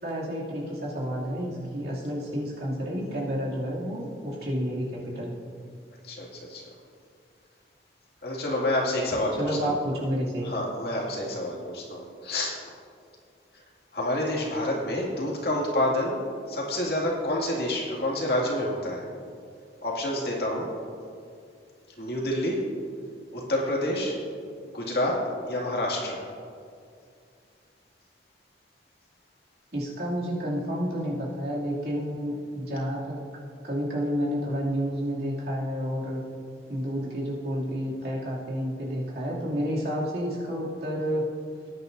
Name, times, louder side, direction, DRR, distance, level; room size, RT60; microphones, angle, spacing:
voice 1, 0.0-5.4 9.4-10.5 29.7-33.2 33.6-36.2 36.7-41.3, equal, 60° right, -6 dB, 2.7 m, -30 dB
voice 2, 6.0-6.6 8.2-9.7 10.4-12.6 13.5-13.6 13.9-16.2 16.5-19.1 19.8-20.7 22.0-22.6 23.3-24.2 24.7-26.2, left 1 dB, 60° left, -3 dB, 2.3 m, -28 dB
19.0 x 9.3 x 2.7 m, 2.3 s
head